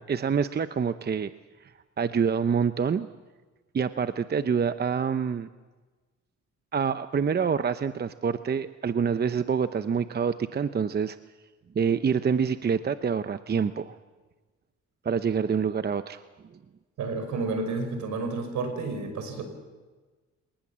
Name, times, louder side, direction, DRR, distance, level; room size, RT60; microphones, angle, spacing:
voice 1, 0.1-1.3 1.6-1.7 2.0-3.1 3.7-5.5 6.7-11.2 11.7-14.0 15.0-16.2, right 6 dB, 35° right, 11 dB, 0.8 m, -26 dB
voice 2, 17.0-19.4, right 3 dB, 70° right, 7 dB, 5.7 m, -30 dB
27.5 x 19.5 x 7.5 m, 1.3 s
cardioid pair, 90°, 30 cm